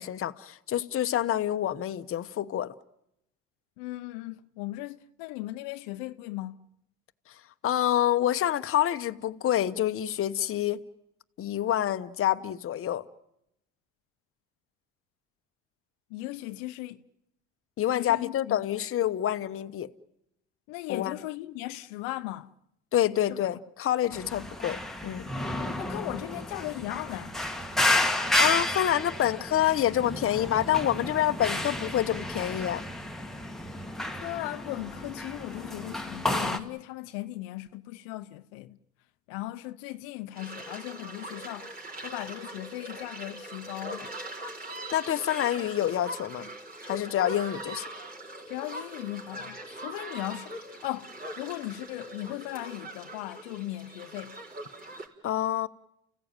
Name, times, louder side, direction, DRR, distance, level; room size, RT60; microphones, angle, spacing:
voice 1, 0.0-2.7 7.6-10.8 11.4-13.0 17.8-19.9 20.9-21.1 22.9-24.8 25.0-25.3 28.4-32.8 44.9-46.5 46.8-47.9 55.2-55.7, left 11 dB, 45° left, 1.1 m, -27 dB
voice 2, 3.8-6.7 16.1-17.1 17.9-18.6 20.7-22.5 23.3-23.4 25.8-27.4 34.2-38.8 39.3-44.2 48.5-54.4, left 17 dB, 80° left, 0.9 m, -37 dB
sound 1, 24.1-36.6, left 1 dB, ahead, 1.9 m, -31 dB
sound 2, 40.4-55.1, right 1 dB, 30° right, 4.7 m, -41 dB
30.0 x 16.0 x 9.0 m
supercardioid pair, 95°, 32 cm